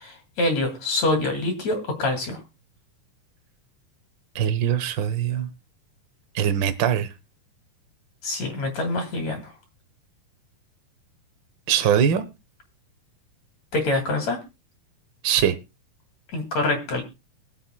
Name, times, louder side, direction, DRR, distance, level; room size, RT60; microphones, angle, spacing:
voice 1, 0.0-2.4 8.2-9.5 13.7-14.4 16.3-17.0, left 2 dB, 55° left, 3.6 m, -25 dB
voice 2, 4.3-5.5 6.3-7.1 11.7-12.2 15.2-15.5, right 9 dB, 70° right, 1.1 m, -22 dB
22.5 x 7.9 x 2.2 m
omnidirectional pair, 3.8 m